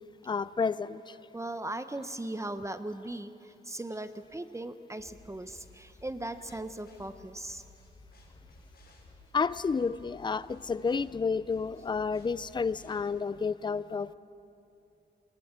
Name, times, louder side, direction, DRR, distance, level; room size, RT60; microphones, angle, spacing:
voice 1, 0.3-1.1 9.3-14.1, left 5 dB, 25° left, 0.4 m, -30 dB
voice 2, 1.3-7.6, right 1 dB, 15° right, 0.7 m, -38 dB
sound 1, 5.0-13.0, left 2 dB, 60° left, 5.2 m, -56 dB
21.0 x 19.5 x 8.7 m
wide cardioid pair, 120°, 18 cm